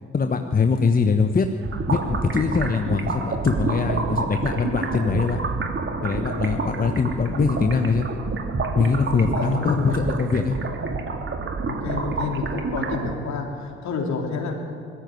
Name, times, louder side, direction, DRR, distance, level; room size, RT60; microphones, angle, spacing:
voice 1, 0.1-1.5 1.9-5.4 6.0-8.1 8.7-10.6, left 5 dB, 25° left, 7 dB, 1.1 m, -22 dB
sound 1, 1.6-13.1, right 4 dB, 35° right, 2.4 m, -28 dB
voice 2, 9.3-10.1 11.6-14.6, left 4 dB, 55° left, 2 dB, 3.8 m, -29 dB
20.0 x 14.5 x 9.5 m, 2.3 s
figure-of-eight pair, 50°, 33 cm